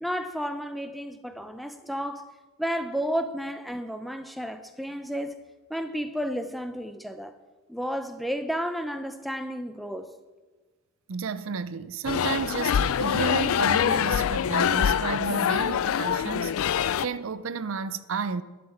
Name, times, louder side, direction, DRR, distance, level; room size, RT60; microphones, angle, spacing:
voice 1, 0.0-2.3 2.6-5.4 5.7-7.3 7.7-10.1, equal, ahead, 0.5 m, -32 dB
voice 2, 11.1-18.4, right 5 dB, 65° right, 0.5 m, -32 dB
sound 1, 12.1-17.1, left 8 dB, 70° left, 0.3 m, -25 dB
12.0 x 6.0 x 8.5 m
head